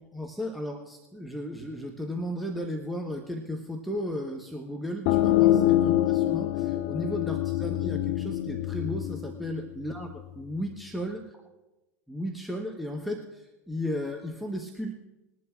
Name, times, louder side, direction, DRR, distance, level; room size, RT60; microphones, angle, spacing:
voice 1, 0.1-11.2 12.1-14.9, equal, ahead, 2 dB, 1.2 m, -35 dB
sound 1, 5.1-10.5, left 13 dB, 50° left, 0.6 m, -26 dB
21.5 x 11.0 x 2.5 m, 1.0 s
figure-of-eight pair, 80°, 8 cm